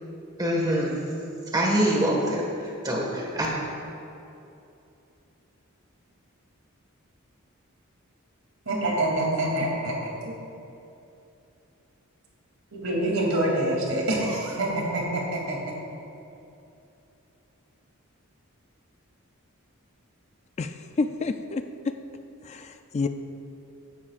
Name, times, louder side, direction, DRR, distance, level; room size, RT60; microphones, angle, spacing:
voice 1, 0.4-1.0 1.5-3.5, right 1 dB, 20° right, -2 dB, 1.6 m, -25 dB
voice 2, 8.7-10.3 12.7-15.6, right 1 dB, 70° right, -3 dB, 2.8 m, -26 dB
voice 3, 20.6-21.9 22.4-23.1, left 3 dB, 30° left, 8 dB, 0.4 m, -29 dB
16.0 x 11.0 x 2.5 m, 2.7 s
head